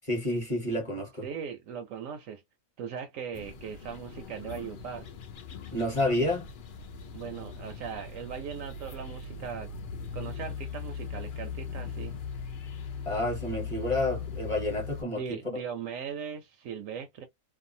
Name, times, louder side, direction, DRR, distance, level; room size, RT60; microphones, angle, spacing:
voice 1, 0.1-1.3 5.7-6.5 13.0-15.4, left 1 dB, 25° left, 1.0 m, -29 dB
voice 2, 1.2-2.4 2.8-5.1 7.1-9.7 10.1-12.2 15.0-17.3, right 7 dB, 70° right, 0.9 m, -39 dB
sound 1, 3.3-15.0, left 5 dB, 70° left, 0.5 m, -39 dB
2.6 x 2.2 x 2.6 m
omnidirectional pair, 1.5 m